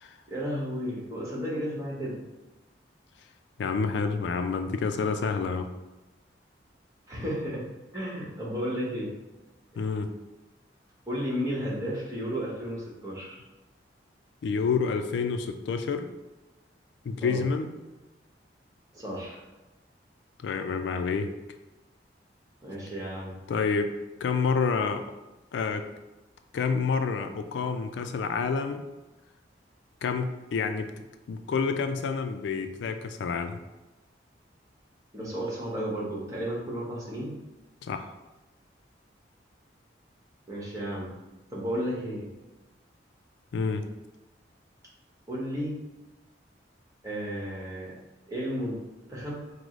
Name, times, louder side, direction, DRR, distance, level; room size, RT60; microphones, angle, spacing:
voice 1, 0.3-2.2 7.1-7.6 7.9-9.1 11.1-13.4 17.2-17.4 18.9-19.4 22.6-23.3 35.1-37.3 40.5-41.1 41.5-42.3 45.3-45.8 47.0-48.0 48.3-48.8 49.1-49.4, equal, 20° right, -6 dB, 1.0 m, -33 dB
voice 2, 3.6-5.7 9.8-10.1 14.4-16.1 17.0-17.7 20.4-21.3 23.5-23.9 24.2-25.0 25.5-25.8 26.5-28.8 30.0-30.9 31.3-33.6 37.9-38.1 43.5-43.8, left 5 dB, 75° left, 8 dB, 0.3 m, -28 dB
4.6 x 2.0 x 3.7 m, 1.1 s
head